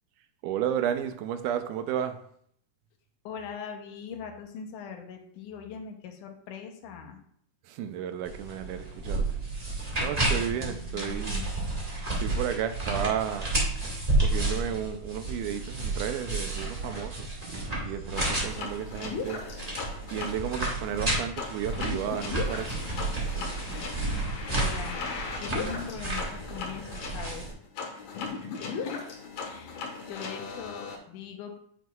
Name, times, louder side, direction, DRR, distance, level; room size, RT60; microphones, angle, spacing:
voice 1, 0.4-2.2 7.6-9.3 10.0-11.4 12.1-13.5 14.2-19.7 20.1-22.8, right 9 dB, 80° right, 9 dB, 2.1 m, -33 dB
voice 2, 3.2-7.2 10.6-11.5 22.9-24.1 24.5-27.5 28.6-29.1 29.4-29.8 30.1-31.6, left 7 dB, 80° left, 3 dB, 2.3 m, -41 dB
sound 1, 8.2-27.5, right 2 dB, 25° right, 0.9 m, -31 dB
sound 2, 18.2-31.0, left 4 dB, 60° left, 2.4 m, -37 dB
9.2 x 6.0 x 2.3 m, 0.64 s
omnidirectional pair, 3.7 m